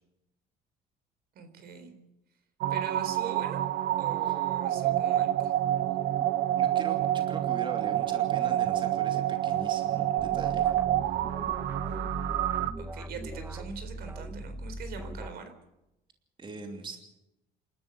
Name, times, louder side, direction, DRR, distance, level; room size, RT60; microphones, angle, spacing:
voice 1, 1.4-1.9 2.7-3.6 4.0-5.5 12.8-15.5, right 6 dB, 65° right, 9 dB, 4.0 m, -41 dB
sound 1, 2.6-12.7, right 13 dB, 85° right, 1.1 m, -28 dB
voice 2, 5.8-6.3 6.5-10.7 16.4-17.0, right 3 dB, 30° right, 4 dB, 2.9 m, -42 dB
sound 2, 10.2-15.3, right 1 dB, 10° right, 1.1 m, -40 dB
27.5 x 13.0 x 8.0 m, 0.91 s
cardioid pair, 110°, 17 cm